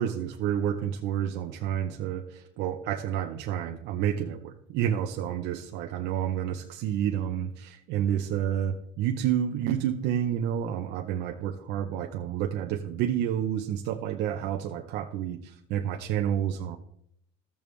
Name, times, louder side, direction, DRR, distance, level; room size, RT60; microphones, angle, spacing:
voice 1, 0.0-16.8, right 10 dB, 65° right, 4 dB, 0.7 m, -29 dB
14.0 x 7.0 x 3.2 m, 0.71 s
cardioid pair, 125°, 19 cm